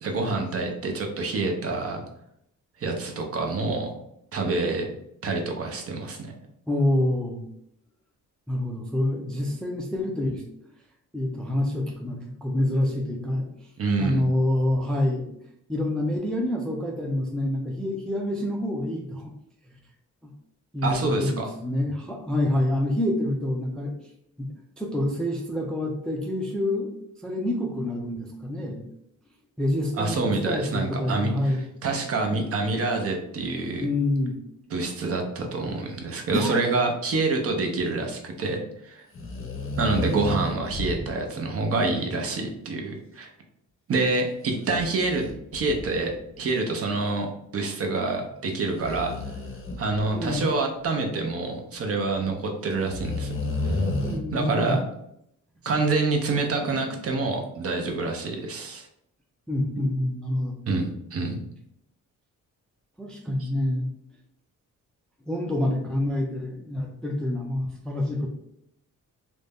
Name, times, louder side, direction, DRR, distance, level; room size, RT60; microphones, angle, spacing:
voice 1, 0.0-2.0 2.8-3.9 4.3-4.9 5.2-6.3 13.8-14.2 20.8-21.5 30.0-31.3 31.8-33.9 34.7-39.0 39.8-43.3 43.9-45.2 45.5-49.1 49.8-53.3 53.7-53.8 54.3-54.9 55.6-58.9 59.8-59.9 60.7-61.4 63.4-63.5, right 3 dB, 45° right, 3 dB, 0.5 m, -27 dB
voice 2, 6.7-7.5 8.5-10.4 11.1-13.5 14.0-15.3 15.7-19.3 20.2-20.3 20.7-23.9 24.4-26.9 27.2-28.9 29.6-31.6 33.8-34.3 36.3-36.6 40.9-41.1 41.4-41.5 50.1-50.4 54.0-54.8 56.4-56.5 59.5-60.6 63.0-63.9 65.3-68.3, left 1 dB, ahead, 0 dB, 0.3 m, -27 dB
sound 1, 39.1-41.2 44.6-46.2 46.9-47.0 48.8-50.4 52.1-52.2 52.9-54.2, left 2 dB, 40° left, 0.7 m, -31 dB
2.5 x 2.1 x 3.4 m, 0.75 s
cardioid pair, 125°, 32 cm